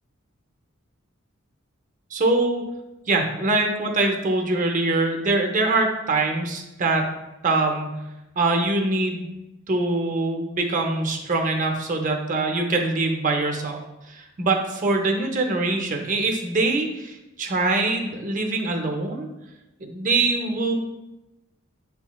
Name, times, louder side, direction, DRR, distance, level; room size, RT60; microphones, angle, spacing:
voice 1, 2.1-2.6 3.1-7.1 7.4-8.0 8.4-9.2 9.7-13.8 14.1-19.3 19.8-20.7, right 2 dB, 40° right, 3 dB, 0.5 m, -23 dB
7.9 x 3.0 x 2.2 m, 0.98 s
head